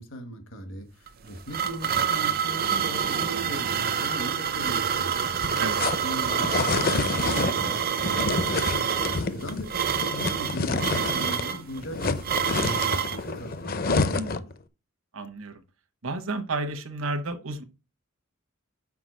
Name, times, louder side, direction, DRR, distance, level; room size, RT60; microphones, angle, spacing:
voice 1, 0.0-5.1 6.0-14.5, right 1 dB, 70° left, 1.6 m, -39 dB
sound 1, 1.1-13.2, right 7 dB, 45° right, 0.5 m, -27 dB
sound 2, 5.2-11.5 11.8-14.5, left 3 dB, 45° left, 0.6 m, -28 dB
voice 2, 15.1-15.6 16.0-17.6, right 2 dB, 80° right, 1.1 m, -31 dB
5.9 x 4.8 x 6.2 m
head